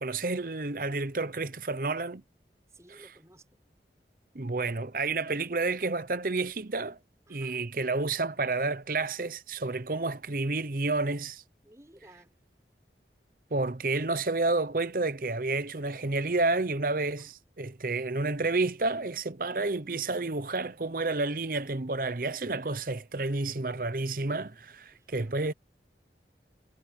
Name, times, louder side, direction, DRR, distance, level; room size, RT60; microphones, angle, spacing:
voice 1, 0.0-2.2 4.3-7.0 7.3-11.4 13.5-25.5, right 3 dB, 50° right, 0.9 m, -30 dB
voice 2, 2.7-3.6 7.3-7.7 11.6-12.4 17.2-17.3 23.2-24.1 24.9-25.4, right 1 dB, 15° right, 6.5 m, -57 dB
head